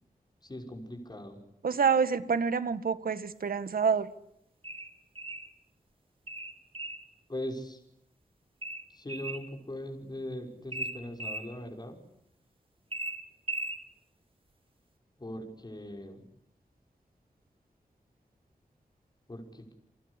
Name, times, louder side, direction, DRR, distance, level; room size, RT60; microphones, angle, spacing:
voice 1, 0.4-1.4 7.3-7.8 8.9-12.0 15.2-16.2 19.3-19.7, left 1 dB, 30° left, 3 dB, 6.0 m, -40 dB
voice 2, 1.6-4.1, right 6 dB, 85° right, 12 dB, 1.7 m, -27 dB
sound 1, 4.6-5.5 6.3-7.1 8.6-9.5 10.7-11.5 12.9-13.8, right 2 dB, 40° right, 3.5 m, -37 dB
29.5 x 24.0 x 8.4 m, 0.77 s
wide cardioid pair, 85°, 15 cm